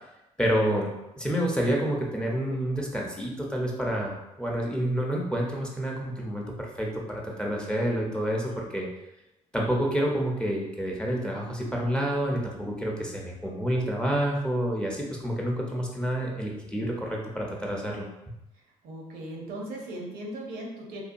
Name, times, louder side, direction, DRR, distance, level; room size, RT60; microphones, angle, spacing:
voice 1, 0.4-0.9 1.2-8.9 9.5-18.1, equal, 5° left, -1 dB, 0.7 m, -28 dB
voice 2, 18.5-21.0, right 1 dB, 65° right, -1 dB, 0.7 m, -38 dB
2.8 x 2.2 x 2.5 m, 0.92 s
hypercardioid pair, 55°, 17 cm